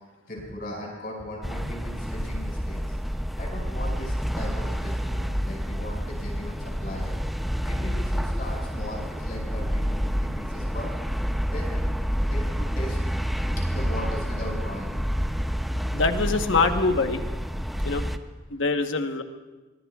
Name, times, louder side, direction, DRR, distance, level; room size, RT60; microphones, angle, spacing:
voice 1, 0.3-3.0 3.4-7.1 7.6-10.9 11.4-11.8 12.2-13.0 13.7-15.0, left 1 dB, 50° left, -1 dB, 5.9 m, -38 dB
sound 1, 1.4-18.2, equal, ahead, 0.5 m, -28 dB
voice 2, 15.9-17.2 17.8-18.1 18.5-19.2, left 3 dB, 85° left, 6 dB, 1.1 m, -24 dB
25.0 x 21.5 x 2.4 m, 1.2 s
head